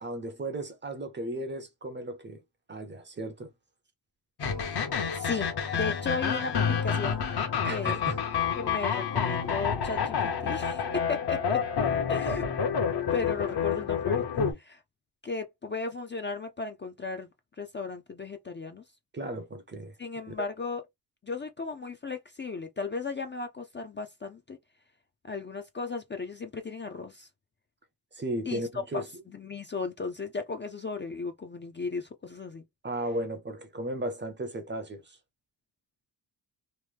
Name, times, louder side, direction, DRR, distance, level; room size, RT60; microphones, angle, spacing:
voice 1, 0.0-2.4 2.7-3.5 7.6-8.2 19.1-19.9 20.4-20.5 28.1-29.1 32.8-35.2, right 1 dB, 25° right, 0.5 m, -35 dB
sound 1, 4.4-14.5, left 6 dB, 65° left, 1.0 m, -28 dB
voice 2, 5.1-7.3 7.7-8.0 8.6-11.6 12.1-12.5 13.1-14.8 15.2-17.3 17.6-18.8 20.0-20.8 21.2-24.6 25.2-27.3 28.5-29.0 29.3-32.6, left 4 dB, 30° left, 0.4 m, -35 dB
3.0 x 2.0 x 3.2 m
wide cardioid pair, 130°, 42 cm